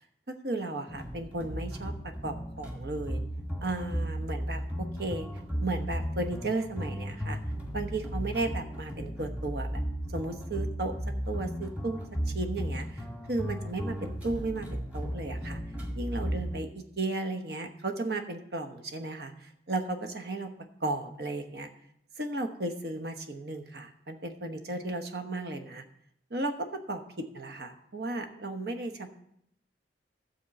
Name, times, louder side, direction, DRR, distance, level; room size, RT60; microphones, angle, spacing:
voice 1, 0.3-3.2 3.6-5.3 5.6-7.4 7.7-9.8 10.1-10.9 11.3-12.0 12.3-15.6 15.9-20.5 20.8-21.7 22.2-25.8 26.3-29.1, right 2 dB, 60° right, 6 dB, 1.1 m, -35 dB
sound 1, 0.9-16.6, equal, 10° right, 1.8 m, -35 dB
12.5 x 4.5 x 7.7 m, 0.73 s
head